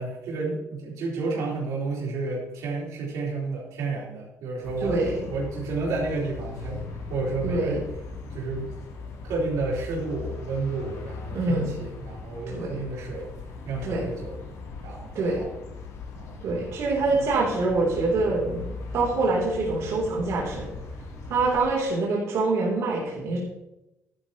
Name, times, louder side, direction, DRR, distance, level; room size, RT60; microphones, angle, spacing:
voice 1, 0.0-5.0 5.3-7.8 8.3-8.7 9.2-13.3 13.7-14.4 14.8-15.5 16.1-16.3, right 3 dB, 90° right, -4 dB, 4.0 m, -31 dB
sound 1, 4.6-21.6, left 3 dB, 80° left, 3.1 m, -39 dB
voice 2, 4.8-5.3 7.4-7.8 11.3-11.7 12.5-12.7 13.8-14.1 15.1-15.4 16.4-20.7 21.3-23.4, right 3 dB, 65° right, -4 dB, 3.2 m, -25 dB
13.5 x 11.5 x 3.0 m, 0.94 s
cardioid pair, 145°, 5 cm